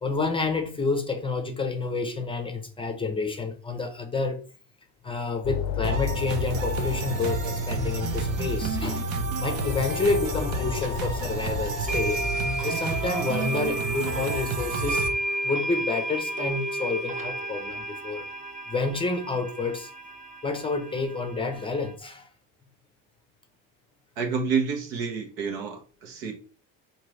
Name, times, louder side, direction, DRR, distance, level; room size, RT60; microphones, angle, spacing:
voice 1, 0.0-4.4 5.0-9.0 9.4-12.2 12.6-15.0 15.4-18.2 18.7-19.9 20.4-22.3, left 3 dB, 15° left, 0.6 m, -29 dB
sound 1, 5.4-12.3, left 6 dB, 60° left, 0.5 m, -33 dB
sound 2, 5.8-15.1, right 4 dB, 55° right, 0.8 m, -30 dB
sound 3, 10.8-10.9 11.9-21.9, right 1 dB, 20° right, 0.7 m, -32 dB
voice 2, 24.2-26.3, right 5 dB, 80° right, 1.2 m, -29 dB
3.7 x 2.7 x 3.1 m
cardioid pair, 125°, 38 cm